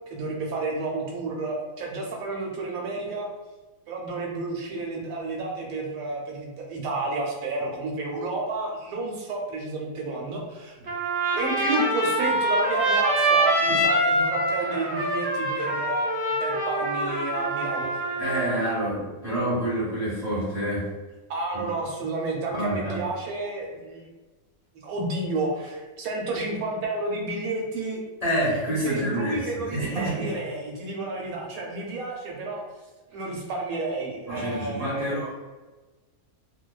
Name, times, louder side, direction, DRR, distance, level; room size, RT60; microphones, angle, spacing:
voice 1, 0.1-3.3 3.9-10.8 11.4-16.0 16.4-18.0 21.3-24.0 24.8-28.0 28.8-32.6 33.1-35.3, right 2 dB, 75° right, -1 dB, 1.0 m, -31 dB
Trumpet, 10.9-18.5, right 1 dB, 60° right, 0.5 m, -25 dB
voice 2, 18.2-20.9 21.5-21.7 22.5-23.0 28.2-30.4 34.3-35.3, right 1 dB, ahead, -11 dB, 1.0 m, -28 dB
2.5 x 2.2 x 2.3 m, 1.2 s
omnidirectional pair, 1.6 m